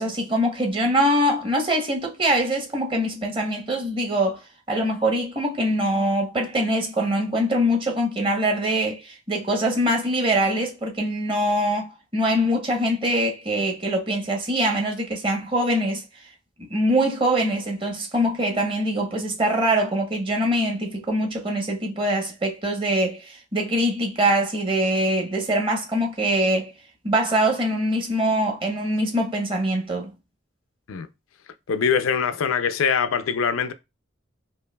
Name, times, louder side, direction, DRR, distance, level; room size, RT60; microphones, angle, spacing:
voice 1, 0.0-4.4 4.7-16.0 16.7-26.7 27.0-30.1, right 1 dB, 25° right, 0.8 m, -23 dB
voice 2, 31.7-33.7, left 6 dB, 85° left, 0.4 m, -23 dB
5.1 x 2.5 x 2.2 m
head